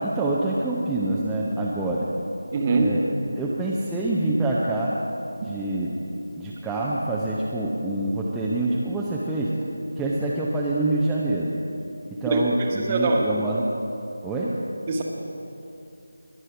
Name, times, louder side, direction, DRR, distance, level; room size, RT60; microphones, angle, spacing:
voice 1, 0.0-2.1 2.7-3.0 3.4-5.0 5.4-5.9 6.4-9.5 10.0-11.5 12.1-13.7 14.2-14.6, right 2 dB, 5° right, -7 dB, 0.6 m, -26 dB
voice 2, 2.5-2.9 5.4-5.5 12.3-12.4 12.9-13.2 14.9-15.0, right 3 dB, 20° right, 1 dB, 1.3 m, -22 dB
21.5 x 7.7 x 4.9 m, 2.8 s
figure-of-eight pair, 165°, 0 cm